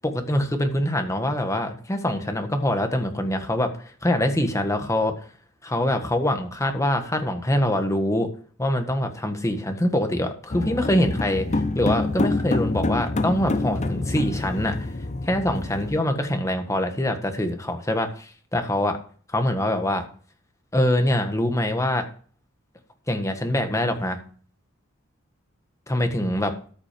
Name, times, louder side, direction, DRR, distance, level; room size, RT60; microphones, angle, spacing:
voice 1, 0.0-3.7 4.0-5.1 5.6-8.3 8.6-14.9 15.3-19.0 19.3-20.0 20.7-22.1 23.1-24.2 25.9-26.5, left 1 dB, 15° left, 6 dB, 1.5 m, -24 dB
sound 1, 10.5-16.0, left 2 dB, 35° left, 0.7 m, -26 dB
13.5 x 6.1 x 5.2 m, 0.44 s
head